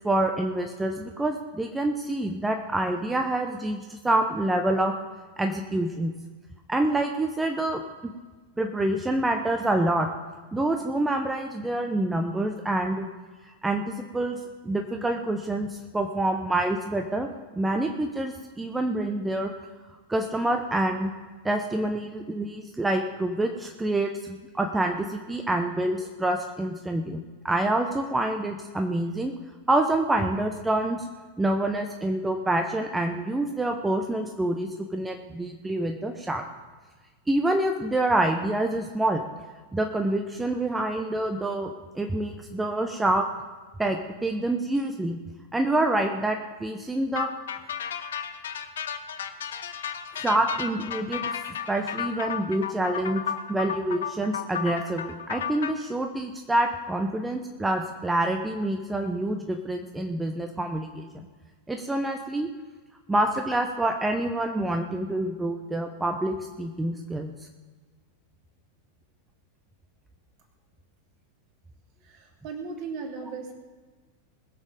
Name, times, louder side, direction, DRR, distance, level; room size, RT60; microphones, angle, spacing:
voice 1, 0.0-4.9 5.4-6.1 6.7-8.1 8.6-10.1 10.5-13.1 13.4-14.4 14.6-17.3 17.5-19.5 20.1-21.1 21.4-29.3 29.7-31.1 31.4-36.4 37.3-39.2 39.7-41.7 41.9-43.3 43.8-45.2 45.5-47.3 50.2-51.4 51.7-61.1 61.7-62.5 63.1-67.3, right 1 dB, 10° right, 4 dB, 0.9 m, -27 dB
sound 1, 47.1-55.7, left 8 dB, 60° left, 0.8 m, -33 dB
voice 2, 72.0-73.5, right 4 dB, 45° right, 1 dB, 3.0 m, -37 dB
21.0 x 7.4 x 5.2 m, 1.4 s
figure-of-eight pair, 90°, 0 cm